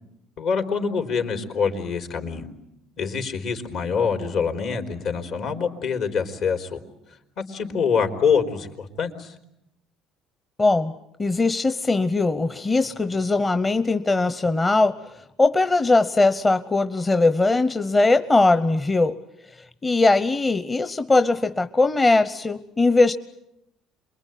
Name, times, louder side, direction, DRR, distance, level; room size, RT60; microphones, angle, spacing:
voice 1, 0.4-2.5 3.0-6.8 7.4-9.3, left 6 dB, 65° left, 5 dB, 4.0 m, -25 dB
voice 2, 10.6-10.9 11.2-19.2 19.5-23.1, left 3 dB, 25° left, 10 dB, 1.0 m, -20 dB
28.0 x 22.5 x 9.3 m, 0.86 s
supercardioid pair, 85°, 0 cm